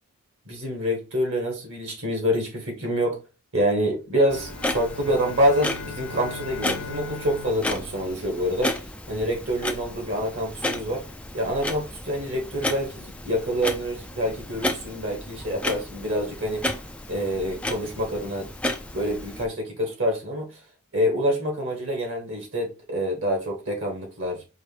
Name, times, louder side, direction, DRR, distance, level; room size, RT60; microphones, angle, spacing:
voice 1, 0.4-3.2 3.5-11.0 11.3-16.7 17.1-18.5 18.9-20.6 20.9-24.4, equal, 55° right, 1.6 m, -26 dB
sound 1, 4.1-8.8, left 5 dB, 75° left, 1.1 m, -40 dB
Clock, 4.3-19.5, left 1 dB, 5° left, 0.4 m, -33 dB
4.6 x 2.6 x 3.4 m
head